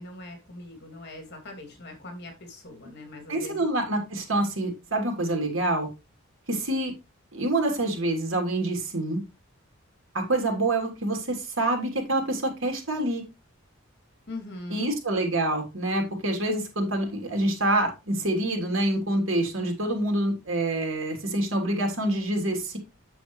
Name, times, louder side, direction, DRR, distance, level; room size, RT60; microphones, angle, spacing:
voice 1, 0.0-3.7 14.3-14.9, left 2 dB, 55° left, 2.9 m, -41 dB
voice 2, 3.3-5.9 6.5-6.9 7.3-9.2 10.1-13.2 14.7-22.8, right 1 dB, 75° right, 3.4 m, -26 dB
8.9 x 7.1 x 3.3 m
head